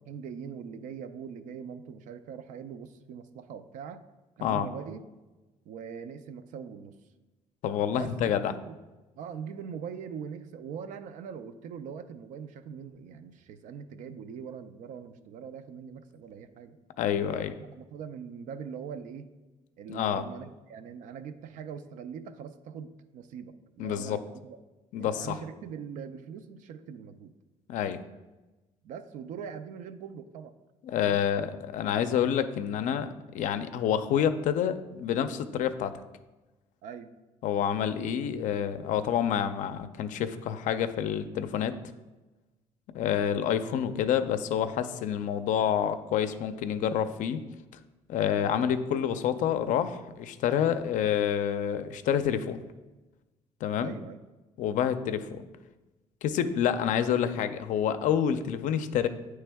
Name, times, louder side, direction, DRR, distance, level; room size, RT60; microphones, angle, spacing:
voice 1, 0.1-4.0 4.4-5.0 5.7-7.0 7.9-8.8 9.2-16.8 17.3-19.3 19.8-24.6 25.0-27.3 28.8-30.5 31.0-31.2 36.8-37.1 53.8-54.2, right 7 dB, 80° right, 10 dB, 0.5 m, -42 dB
voice 2, 7.6-8.5 17.0-17.5 19.9-20.2 23.8-24.2 24.9-25.4 27.7-28.0 30.9-33.1 33.3-35.9 37.4-41.8 42.9-47.4 48.1-52.6 53.6-54.0 54.6-55.4 56.2-59.1, left 9 dB, 75° left, 10 dB, 0.4 m, -28 dB
9.0 x 3.2 x 3.4 m, 1.1 s
cardioid pair, 80°, 13 cm